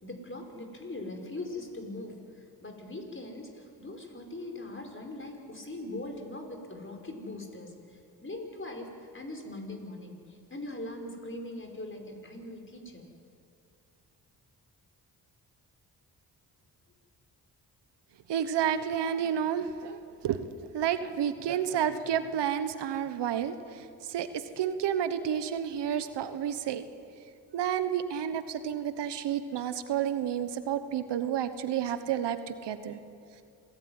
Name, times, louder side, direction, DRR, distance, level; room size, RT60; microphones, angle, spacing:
voice 1, 0.0-13.1, left 2 dB, 30° left, 3 dB, 5.5 m, -41 dB
voice 2, 18.3-20.0 20.2-23.5 24.1-26.8 27.5-33.0, right 9 dB, 85° right, 11 dB, 1.3 m, -30 dB
27.0 x 17.5 x 9.7 m, 2.4 s
cardioid pair, 65°, 41 cm